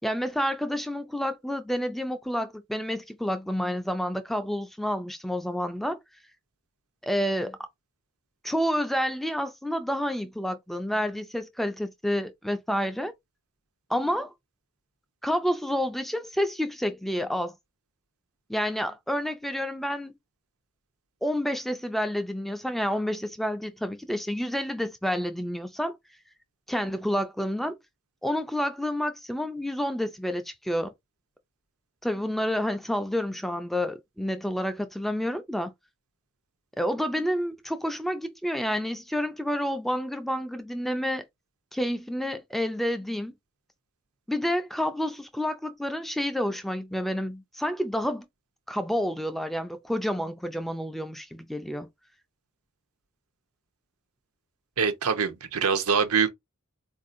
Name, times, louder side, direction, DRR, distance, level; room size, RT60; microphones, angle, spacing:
voice 1, 0.0-6.0 7.0-7.6 8.4-13.1 13.9-14.3 15.2-17.5 18.5-20.1 21.2-26.0 26.7-27.7 28.2-30.9 32.0-35.7 36.8-41.2 41.7-43.3 44.3-48.2 48.7-51.9, equal, ahead, 0.3 m, -29 dB
voice 2, 54.8-56.3, right 6 dB, 80° right, 0.7 m, -24 dB
4.1 x 2.6 x 2.5 m
head